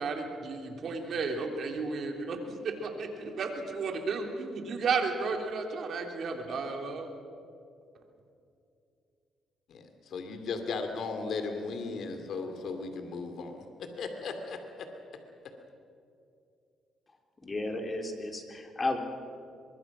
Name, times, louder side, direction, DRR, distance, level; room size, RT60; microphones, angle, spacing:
voice 1, 0.0-2.4 2.8-7.1, right 4 dB, 60° right, 3 dB, 3.4 m, -33 dB
voice 2, 9.7-14.9, left 4 dB, 65° left, 6 dB, 2.5 m, -36 dB
voice 3, 17.4-19.0, left 2 dB, 30° left, 4 dB, 3.4 m, -33 dB
24.0 x 22.0 x 6.0 m, 2.5 s
cardioid pair, 90°, 0 cm